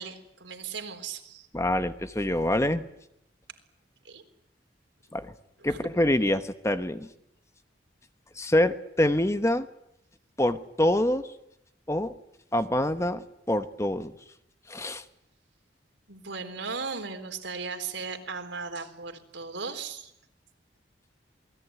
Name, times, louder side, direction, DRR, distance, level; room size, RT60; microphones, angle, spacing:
voice 1, 0.0-1.5 4.0-4.2 5.7-5.8 16.1-20.1, right 5 dB, 80° right, 6 dB, 3.8 m, -37 dB
voice 2, 1.5-2.8 5.1-5.3 5.6-7.1 8.3-9.7 10.4-11.2 11.9-12.1 12.5-14.1 14.7-15.0, left 1 dB, 15° left, 10 dB, 1.1 m, -25 dB
28.0 x 20.5 x 9.5 m, 0.78 s
head